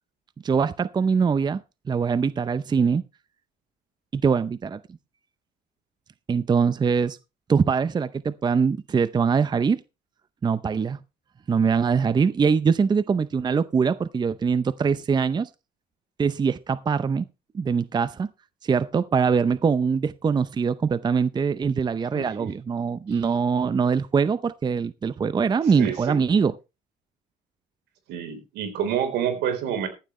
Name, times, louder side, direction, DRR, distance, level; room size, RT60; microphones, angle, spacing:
voice 1, 0.4-1.6 1.9-3.0 4.1-4.8 6.3-7.2 7.5-9.8 10.4-11.0 11.5-15.5 16.2-17.2 17.5-18.3 18.6-26.6, right 6 dB, 25° right, 0.6 m, -23 dB
voice 2, 22.1-22.5 23.1-23.2 25.8-26.2 28.1-29.9, right 8 dB, 80° right, 4.0 m, -28 dB
15.0 x 11.5 x 3.2 m
cardioid pair, 110°, 17 cm